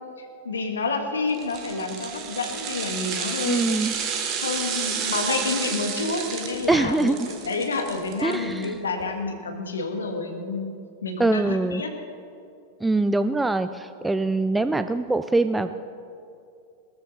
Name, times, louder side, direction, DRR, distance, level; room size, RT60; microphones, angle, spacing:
voice 1, 0.2-3.7 4.4-10.7 11.0-11.9, left 3 dB, 70° left, 5 dB, 1.6 m, -29 dB
sound 1, 1.3-8.7 9.0-9.1, right 6 dB, 35° right, 1.7 m, -31 dB
voice 2, 3.5-3.9 6.7-7.3 8.2-8.7 11.2-11.8 12.8-15.7, right 2 dB, 5° right, 11 dB, 0.4 m, -23 dB
18.0 x 13.5 x 4.1 m, 2.5 s
figure-of-eight pair, 90°, 0 cm